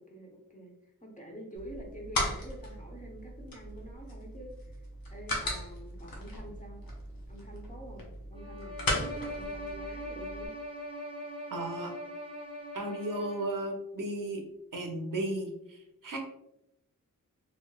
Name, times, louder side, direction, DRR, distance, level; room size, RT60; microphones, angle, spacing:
voice 1, 0.1-0.7 1.0-6.8 7.3-10.5, right 1 dB, 20° left, -1 dB, 0.8 m, -47 dB
sound 1, 1.5-10.5, left 1 dB, 90° left, 0.8 m, -38 dB
sound 2, 8.3-13.7, equal, 15° right, 0.6 m, -41 dB
voice 2, 11.5-11.9 12.7-14.4 14.7-16.2, right 1 dB, 65° right, 1 dB, 0.7 m, -35 dB
3.0 x 2.8 x 2.3 m, 0.83 s
wide cardioid pair, 70°, 34 cm